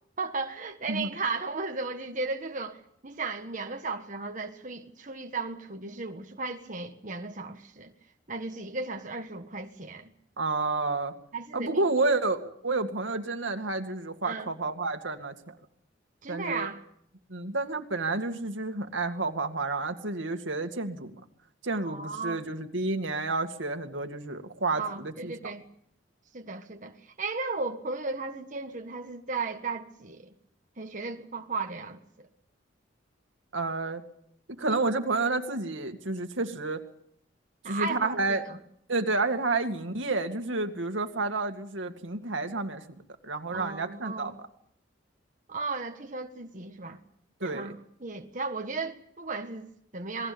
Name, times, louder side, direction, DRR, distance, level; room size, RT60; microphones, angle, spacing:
voice 1, 0.2-7.9 8.3-10.1 11.3-11.8 14.2-14.5 16.2-16.8 21.8-22.5 24.7-25.6 26.3-30.3 30.8-32.3 37.6-38.6 43.5-44.3 45.5-47.0 47.4-50.3, right 3 dB, 40° right, 1.5 m, -35 dB
voice 2, 10.4-11.1 11.5-15.6 16.3-16.7 17.3-21.1 21.6-25.5 33.5-34.0 34.5-36.8 37.7-38.4 38.9-44.5 47.4-47.7, right 3 dB, 85° right, 2.2 m, -30 dB
27.5 x 20.5 x 7.0 m
head